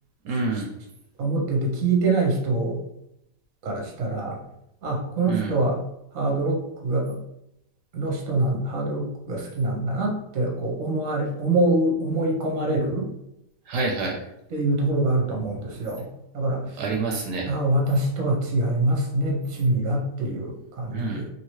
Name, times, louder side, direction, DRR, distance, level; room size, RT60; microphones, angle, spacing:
voice 1, 0.2-0.7 5.3-5.5 13.7-14.2 16.8-17.5 20.9-21.2, right 3 dB, 80° right, 0 dB, 1.3 m, -27 dB
voice 2, 1.2-2.8 3.6-4.4 4.8-5.8 6.1-7.2 7.9-13.1 14.5-16.1 16.3-16.9 17.5-21.3, right 2 dB, 55° right, -1 dB, 1.1 m, -25 dB
3.0 x 2.9 x 3.0 m, 0.82 s
omnidirectional pair, 1.9 m